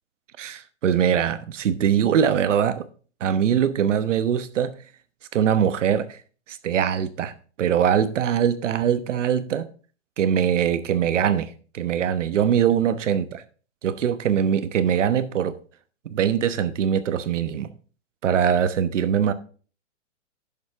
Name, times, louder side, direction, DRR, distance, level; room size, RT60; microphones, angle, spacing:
voice 1, 0.4-2.9 3.2-4.8 5.3-6.2 6.5-7.3 7.6-9.7 10.2-13.4 13.8-15.6 16.1-17.7 18.2-19.3, right 8 dB, 80° right, 1.1 m, -22 dB
10.5 x 6.8 x 3.6 m
hypercardioid pair, 155°, 36 cm